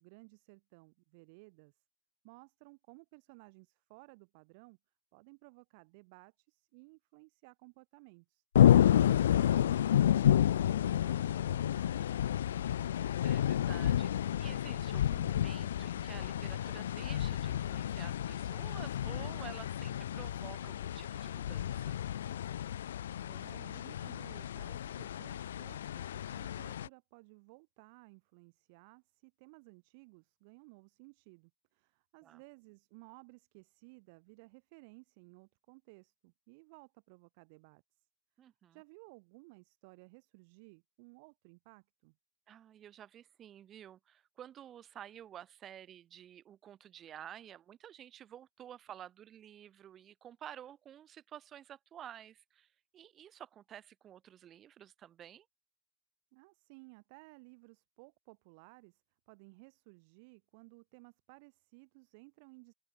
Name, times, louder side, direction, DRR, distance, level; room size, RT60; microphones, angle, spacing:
voice 1, 0.0-1.8 2.2-4.8 5.1-12.1 23.2-38.1 38.4-42.2 56.3-62.7, right 30 dB, 60° right, 2.4 m, -58 dB
sound 1, 8.5-26.9, left 10 dB, 75° left, 0.3 m, -30 dB
voice 2, 12.9-22.1 32.2-32.4 38.4-38.8 42.5-55.5, right 10 dB, 40° right, 1.7 m, -51 dB
open air
figure-of-eight pair, 75°, 0 cm